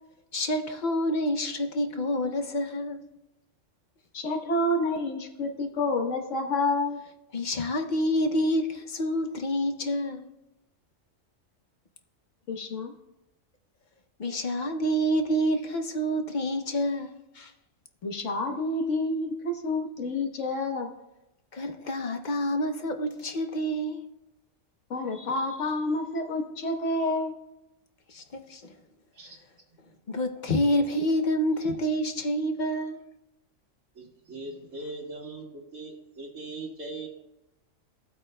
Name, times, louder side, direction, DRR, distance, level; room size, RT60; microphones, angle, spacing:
voice 1, 0.3-3.0 7.3-10.3 14.2-17.5 21.5-24.1 28.1-28.6 30.1-33.0, equal, 45° left, 0.6 m, -28 dB
voice 2, 4.1-7.0 12.5-12.9 18.0-20.9 24.9-27.4, left 2 dB, 70° left, 1.5 m, -29 dB
voice 3, 33.9-37.1, right 2 dB, 90° right, 2.2 m, -40 dB
17.0 x 8.4 x 2.2 m
omnidirectional pair, 1.3 m